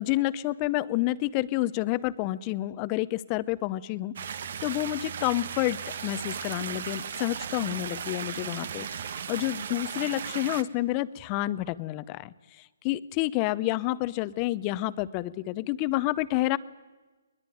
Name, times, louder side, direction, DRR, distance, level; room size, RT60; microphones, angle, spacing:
voice 1, 0.0-4.1 4.6-8.9 9.3-16.6, left 17 dB, 30° left, 17 dB, 0.8 m, -29 dB
sound 1, 4.2-10.6, right 7 dB, 60° right, 1.3 m, -36 dB
21.5 x 21.0 x 9.3 m, 1.3 s
hypercardioid pair, 145°, 0 cm